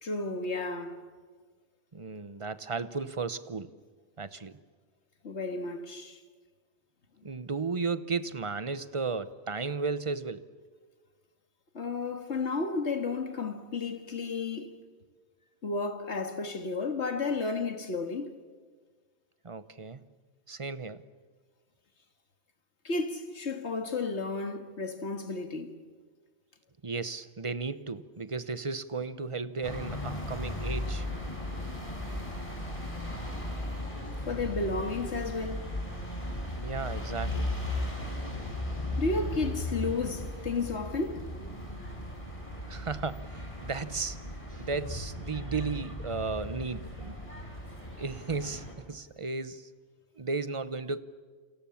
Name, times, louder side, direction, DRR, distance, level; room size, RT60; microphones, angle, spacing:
voice 1, 0.0-1.0 5.2-6.2 11.7-14.8 15.6-18.3 22.8-25.8 34.3-35.7 39.0-41.3, left 3 dB, 70° left, 2.2 m, -32 dB
voice 2, 1.9-3.7 4.2-4.6 7.2-10.4 19.4-20.0 20.5-21.0 26.8-31.1 36.6-37.5 42.7-44.2 44.5-47.1 48.0-49.7 50.2-51.0, right 4 dB, 30° right, 0.9 m, -34 dB
sound 1, 29.6-48.7, left 1 dB, 30° left, 5.0 m, -36 dB
29.0 x 27.5 x 7.2 m
omnidirectional pair, 1.2 m